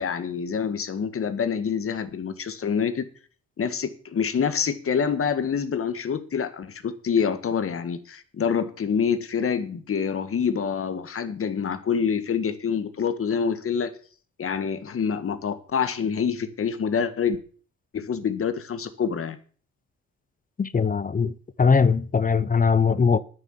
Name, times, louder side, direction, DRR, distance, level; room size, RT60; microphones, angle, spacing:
voice 1, 0.0-3.1 3.6-13.9 14.4-17.4 17.9-19.4, left 6 dB, 45° left, 1.8 m, -26 dB
voice 2, 20.6-23.2, left 5 dB, 25° left, 0.8 m, -21 dB
9.9 x 9.6 x 7.4 m
cardioid pair, 90°, 30 cm